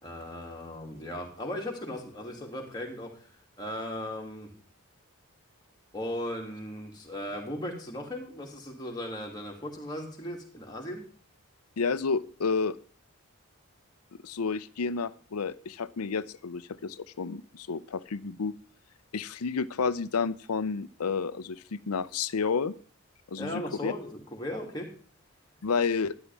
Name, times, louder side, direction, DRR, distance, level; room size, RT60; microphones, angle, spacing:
voice 1, 0.0-4.5 5.9-11.0 23.4-24.9, left 1 dB, 20° left, -1 dB, 2.5 m, -37 dB
voice 2, 11.8-12.8 14.2-18.5 19.1-22.7 23.3-23.9 25.6-26.1, left 5 dB, 85° left, 17 dB, 0.6 m, -30 dB
12.0 x 11.0 x 3.5 m, 0.43 s
head